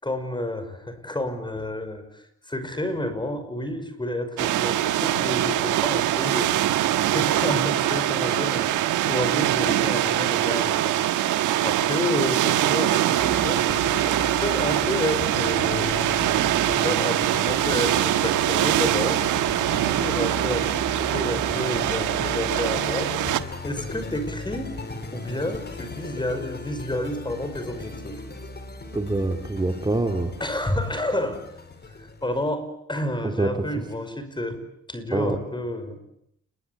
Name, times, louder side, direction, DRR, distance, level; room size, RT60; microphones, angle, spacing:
voice 1, 0.0-13.6 14.0-16.1 16.6-23.1 23.6-28.2 30.4-31.4 31.9-34.6 34.9-36.0, left 1 dB, 15° left, 10 dB, 5.6 m, -30 dB
sound 1, 4.4-23.4, right 13 dB, 85° right, 1.5 m, -23 dB
sound 2, 13.2-32.5, left 3 dB, 35° left, 4.6 m, -36 dB
voice 2, 28.9-30.3 33.2-33.7 35.1-35.4, right 2 dB, 15° right, 4 dB, 2.8 m, -25 dB
30.0 x 22.0 x 8.5 m, 0.75 s
cardioid pair, 90°, 30 cm